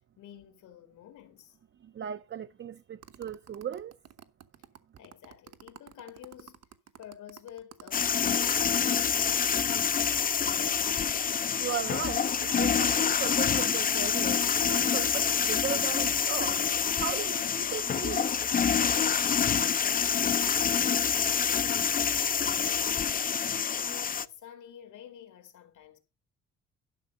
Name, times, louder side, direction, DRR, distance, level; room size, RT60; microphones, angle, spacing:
voice 1, 0.2-1.6 5.0-8.8 19.3-26.0, left 10 dB, 80° left, 2.2 m, -50 dB
voice 2, 1.8-4.0 11.6-18.4, right 9 dB, 40° right, 0.6 m, -37 dB
sound 1, 3.0-11.0 11.3-11.4 11.6-17.2, right 9 dB, 55° right, 1.1 m, -50 dB
sound 2, 7.9-24.3, left 7 dB, 30° left, 0.5 m, -27 dB
11.5 x 5.9 x 5.4 m
cardioid pair, 90°, 30 cm